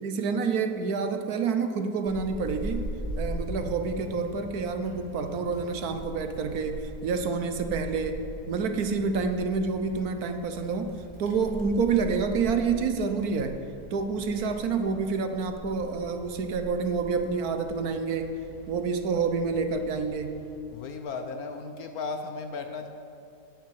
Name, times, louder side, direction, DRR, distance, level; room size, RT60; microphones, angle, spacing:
voice 1, 0.0-2.9 3.2-10.9 11.2-13.6 13.9-18.3 18.7-20.4, right 5 dB, 65° right, 7 dB, 1.2 m, -28 dB
Wind, 2.1-20.6, right 1 dB, 20° right, 2.2 m, -41 dB
voice 2, 20.7-22.9, left 4 dB, 65° left, 6 dB, 1.1 m, -35 dB
9.3 x 8.5 x 7.4 m, 2.7 s
omnidirectional pair, 1.8 m